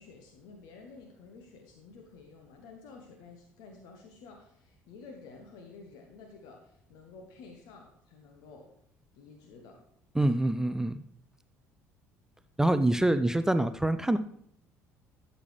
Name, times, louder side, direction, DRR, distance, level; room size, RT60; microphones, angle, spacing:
voice 1, 0.0-8.7 9.1-9.8, left 4 dB, 60° left, 3 dB, 1.3 m, -51 dB
voice 2, 10.2-10.9 12.6-14.2, right 1 dB, 5° right, 11 dB, 0.4 m, -25 dB
13.0 x 6.7 x 3.3 m, 0.70 s
figure-of-eight pair, 55°, 8 cm